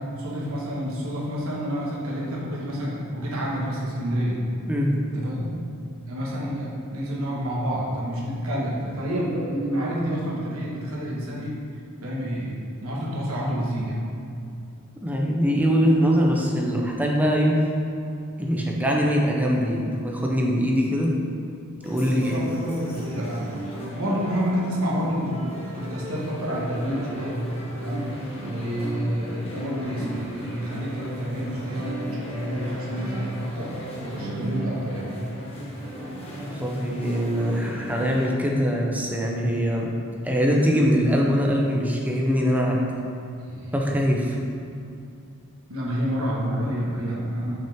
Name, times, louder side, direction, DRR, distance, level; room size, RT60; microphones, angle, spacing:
voice 1, 0.0-4.4 5.1-5.6 6.1-11.6 12.0-12.6 12.8-14.0 22.0-23.6 23.9-27.4 27.8-28.1 28.4-35.2 43.4-43.7 45.7-47.5, equal, 70° right, -5 dB, 1.3 m, -29 dB
voice 2, 4.7-5.0 15.0-17.6 18.4-21.1 21.8-22.4 36.4-39.9 40.2-42.8 43.7-44.4, equal, 5° right, -1 dB, 0.7 m, -22 dB
sound 1, 21.8-38.3, right 1 dB, 25° left, 1.2 m, -36 dB
5.9 x 5.7 x 3.5 m, 2.6 s
head